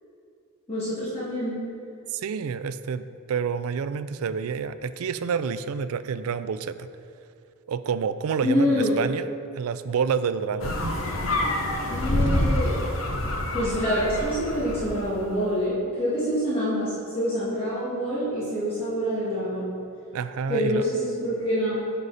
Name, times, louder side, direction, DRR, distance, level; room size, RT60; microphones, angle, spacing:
voice 1, 0.7-1.6 8.4-9.0 11.9-12.8 13.2-19.7 20.5-21.8, equal, 25° left, -11 dB, 1.8 m, -26 dB
voice 2, 2.1-6.9 7.7-9.2 9.5-11.0 20.1-20.9, right 6 dB, 80° right, 13 dB, 0.4 m, -28 dB
sound 1, 10.6-15.1, left 1 dB, 65° left, 0.8 m, -27 dB
9.9 x 5.5 x 4.0 m, 2.5 s
head